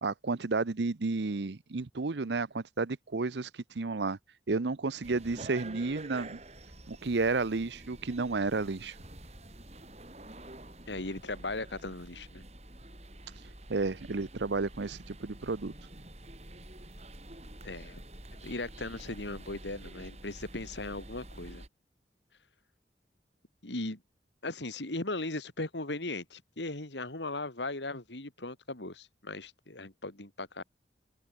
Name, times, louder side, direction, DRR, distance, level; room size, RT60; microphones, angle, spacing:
voice 1, 0.0-3.5 3.7-4.2 4.5-6.4 6.9-8.9 13.7-15.7, right 3 dB, 85° right, 0.8 m, -31 dB
sound 1, 5.0-21.7, right 1 dB, 40° right, 6.1 m, -48 dB
voice 2, 10.9-12.4 17.6-18.0 18.3-21.6 23.6-24.0 24.4-30.6, left 2 dB, 90° left, 3.0 m, -38 dB
head